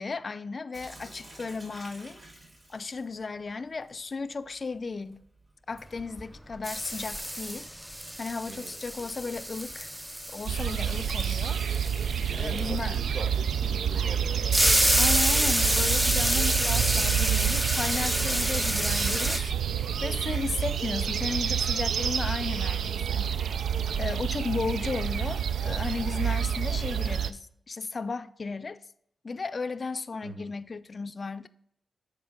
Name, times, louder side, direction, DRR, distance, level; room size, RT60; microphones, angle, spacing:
voice 1, 0.0-2.2 2.7-5.2 5.7-9.9 10.3-12.0 12.4-13.0 15.0-23.5 24.0-28.8 29.2-31.5, left 4 dB, 50° left, 0.4 m, -35 dB
Sink (filling or washing) / Drip, 0.7-9.6, right 1 dB, 35° right, 2.5 m, -54 dB
sound 1, 6.0-6.4 6.6-13.0 14.5-19.4, equal, 10° right, 0.4 m, -28 dB
voice 2, 8.5-8.8 12.2-14.5 23.0-23.2 30.2-30.5, right 4 dB, 70° right, 0.8 m, -42 dB
sound 2, 10.5-27.3, right 8 dB, 85° right, 0.3 m, -28 dB
9.3 x 4.5 x 3.6 m
cardioid pair, 60°, 0 cm